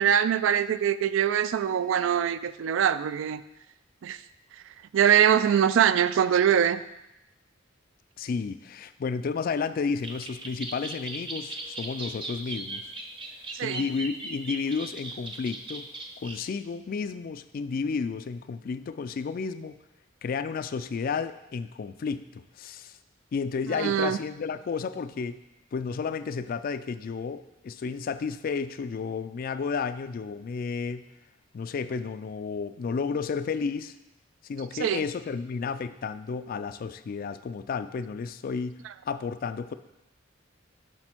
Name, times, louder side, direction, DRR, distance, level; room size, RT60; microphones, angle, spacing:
voice 1, 0.0-3.4 4.0-4.2 4.9-6.8 13.6-13.8 23.7-24.2 34.8-35.0, right 9 dB, 75° right, 14 dB, 0.3 m, -23 dB
voice 2, 8.2-12.9 13.6-15.9 16.2-19.8 20.2-23.0 23.3-25.4 25.7-31.1 31.5-33.9 34.4-39.7, left 5 dB, 45° left, 13 dB, 0.3 m, -32 dB
sound 1, 10.0-16.4, right 3 dB, 25° right, 0.7 m, -38 dB
6.1 x 5.7 x 4.4 m, 0.89 s
head